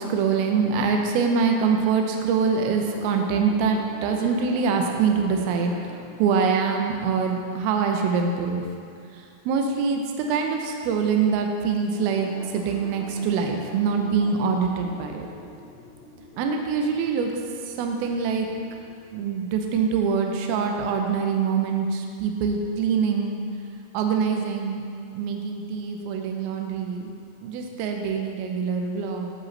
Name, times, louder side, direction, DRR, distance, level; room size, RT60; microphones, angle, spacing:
voice 1, 0.0-5.7 6.2-8.6 9.1-15.3 16.4-17.3 17.7-18.5 19.1-23.4 23.9-24.8 25.1-27.1 27.4-29.3, right 5 dB, 85° right, 3 dB, 2.2 m, -24 dB
sound 1, 2.8-8.9 9.5-10.1 10.7-11.4 11.9-18.9, left 2 dB, 90° left, 3.3 m, -46 dB
9.7 x 7.8 x 3.2 m, 2.4 s
omnidirectional pair, 4.9 m